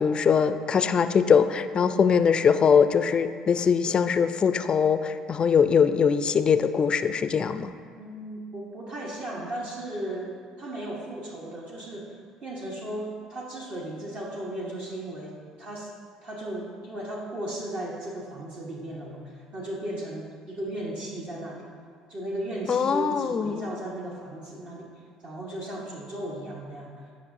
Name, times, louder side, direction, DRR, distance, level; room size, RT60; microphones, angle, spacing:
voice 1, 0.0-7.7 22.7-23.7, left 6 dB, 40° left, 11 dB, 0.4 m, -22 dB
voice 2, 1.7-2.1 7.9-15.9 16.2-21.7 22.1-24.9 25.2-27.0, right 1 dB, 50° right, -2 dB, 1.1 m, -36 dB
9.6 x 5.3 x 2.6 m, 2.1 s
hypercardioid pair, 65°, 3 cm